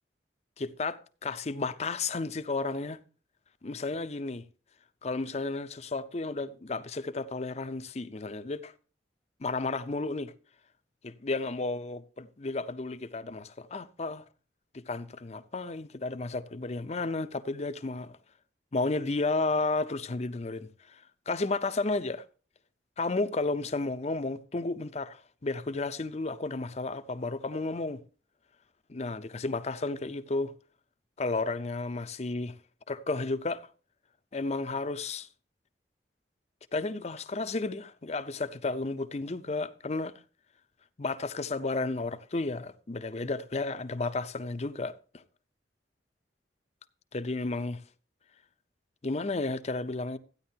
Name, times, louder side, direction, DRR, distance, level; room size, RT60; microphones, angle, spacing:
voice 1, 0.6-3.0 3.6-4.5 5.0-8.7 9.4-10.3 11.0-14.2 14.7-18.2 18.7-21.0 21.3-22.2 23.0-28.0 28.9-30.5 31.2-32.5 32.9-33.7 34.3-35.3 36.7-40.1 41.0-45.2 47.1-47.8 49.0-50.2, left 3 dB, 40° left, 0.6 m, -32 dB
14.5 x 9.8 x 2.8 m
head